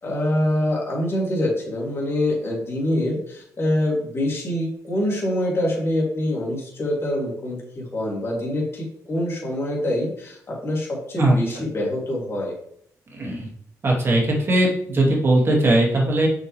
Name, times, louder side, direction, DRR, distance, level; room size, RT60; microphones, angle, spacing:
voice 1, 0.0-12.5, left 1 dB, 40° left, -3 dB, 3.0 m, -25 dB
voice 2, 11.2-11.6 13.1-13.5 13.8-16.3, right 1 dB, 35° right, -2 dB, 2.2 m, -19 dB
6.5 x 5.7 x 3.4 m, 0.68 s
cardioid pair, 110°, 7 cm